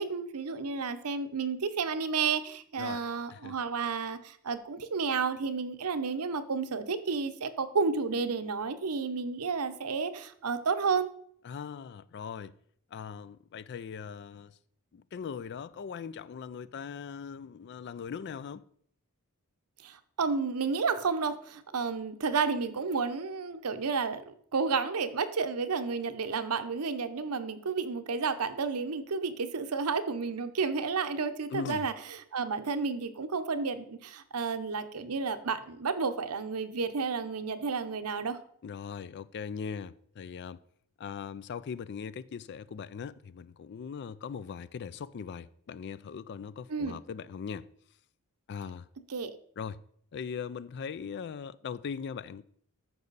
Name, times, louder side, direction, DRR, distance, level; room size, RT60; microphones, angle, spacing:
voice 1, 0.0-11.1 19.8-31.9 32.3-38.4 46.7-47.0 49.1-49.3, right 5 dB, 80° right, 0.8 m, -31 dB
voice 2, 11.4-12.6 12.9-14.6 14.9-18.6 31.5-31.9 38.6-40.6 41.0-47.7 48.5-48.9 49.6-49.8 50.1-52.5, left 6 dB, 50° left, 0.3 m, -40 dB
13.5 x 5.5 x 4.0 m
head